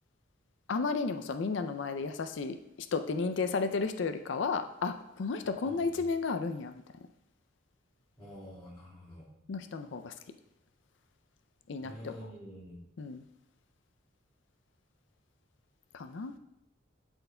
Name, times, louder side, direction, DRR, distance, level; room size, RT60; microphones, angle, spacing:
voice 1, 0.7-2.5 2.9-6.8 9.5-10.1 11.7-12.1 13.0-13.2 15.9-16.3, left 4 dB, 70° left, 9 dB, 0.4 m, -33 dB
voice 2, 5.6-6.0 8.2-9.3 11.8-12.8, equal, 15° left, -13 dB, 2.3 m, -47 dB
11.5 x 4.4 x 2.2 m, 0.83 s
head